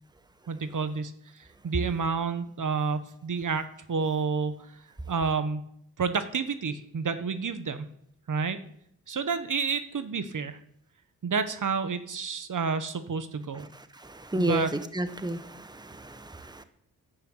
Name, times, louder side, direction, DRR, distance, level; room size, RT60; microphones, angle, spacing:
voice 1, 0.5-1.1 1.4-4.6 5.1-5.6 6.0-7.9 8.3-8.6 9.1-10.6 11.2-13.7 14.3-14.7, right 5 dB, 55° right, 10 dB, 1.4 m, -29 dB
voice 2, 13.5-16.6, right 1 dB, 10° right, 10 dB, 1.3 m, -32 dB
11.0 x 9.0 x 8.1 m, 0.70 s
supercardioid pair, 50°, 38 cm